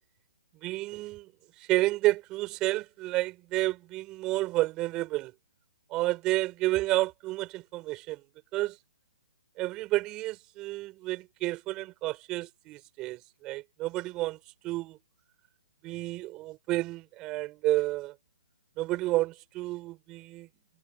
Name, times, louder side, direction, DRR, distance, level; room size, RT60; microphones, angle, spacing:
voice 1, 0.6-1.3 1.6-5.3 5.9-8.2 8.5-8.8 9.6-14.4 14.6-15.0 15.8-18.1 18.8-20.5, right 18 dB, 15° right, 7.0 m, -30 dB
hypercardioid pair, 165°, 4 cm